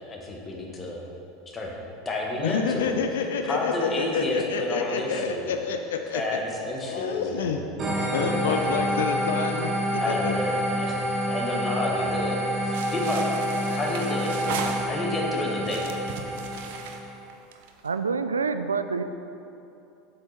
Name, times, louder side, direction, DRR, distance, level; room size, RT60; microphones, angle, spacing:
voice 1, 0.1-1.0 1.5-1.7 2.1-2.9 3.5-5.5 6.1-7.6 8.1-8.8 10.0-12.4 12.6-13.3 13.7-14.3 14.9-15.9, left 2 dB, 25° left, -1 dB, 1.6 m, -30 dB
voice 2, 2.4-6.4 6.8-7.7 8.1-10.3, left 6 dB, 65° left, 5 dB, 0.5 m, -28 dB
sound 1, 7.8-17.2, equal, 30° right, 1.9 m, -28 dB
sound 2, 12.7-15.2 15.6-17.9, right 6 dB, 60° right, 0.7 m, -37 dB
voice 3, 17.8-19.0, right 5 dB, 80° right, 10 dB, 0.3 m, -27 dB
7.9 x 6.7 x 4.4 m, 2.8 s
figure-of-eight pair, 75°, 0 cm